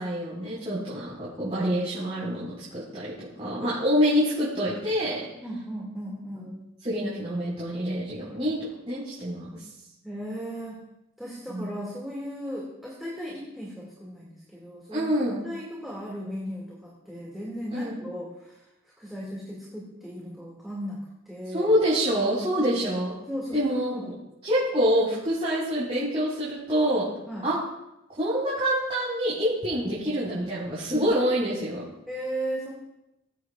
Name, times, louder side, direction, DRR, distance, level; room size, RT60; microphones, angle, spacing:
voice 1, 0.0-3.1 3.4-5.2 6.3-6.4 6.8-8.6 8.9-9.6 11.5-11.7 14.9-15.4 17.7-18.0 21.5-23.1 23.5-24.1 24.4-27.1 27.4-27.6 28.2-31.8, equal, 30° right, -9 dB, 4.6 m, -26 dB
voice 2, 5.4-6.6 10.0-10.8 11.2-15.1 15.4-18.6 19.0-21.7 22.6-22.8 23.3-24.2 27.3-27.5 32.1-32.7, equal, ahead, -6 dB, 2.1 m, -36 dB
23.0 x 8.2 x 2.4 m, 0.89 s
head